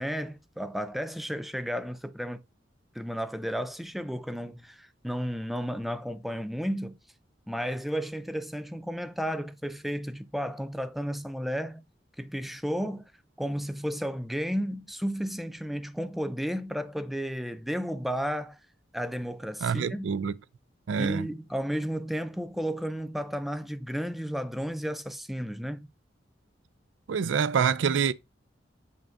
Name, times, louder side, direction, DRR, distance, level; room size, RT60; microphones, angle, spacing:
voice 1, 0.0-2.4 2.9-7.0 7.5-11.8 12.2-13.1 13.4-18.6 18.9-20.1 21.0-25.9, equal, ahead, 0.4 m, -33 dB
voice 2, 19.6-20.3 20.9-21.3 27.1-28.1, right 6 dB, 80° right, 0.4 m, -26 dB
7.2 x 5.6 x 2.6 m
head